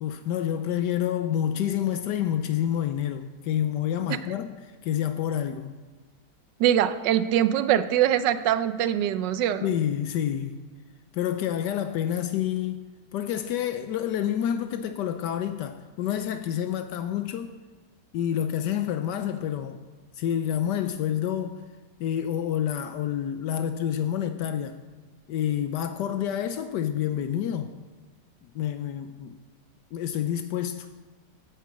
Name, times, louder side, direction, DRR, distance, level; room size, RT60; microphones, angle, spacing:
voice 1, 0.0-5.7 9.6-10.6 11.1-12.8 13.1-17.6 18.1-19.8 20.2-21.6 22.0-24.8 25.3-27.7 28.4-29.4 29.9-30.9, left 10 dB, 80° left, 1.2 m, -28 dB
voice 2, 6.6-9.7, right 11 dB, 85° right, 1.3 m, -23 dB
9.3 x 9.1 x 7.6 m
omnidirectional pair, 1.9 m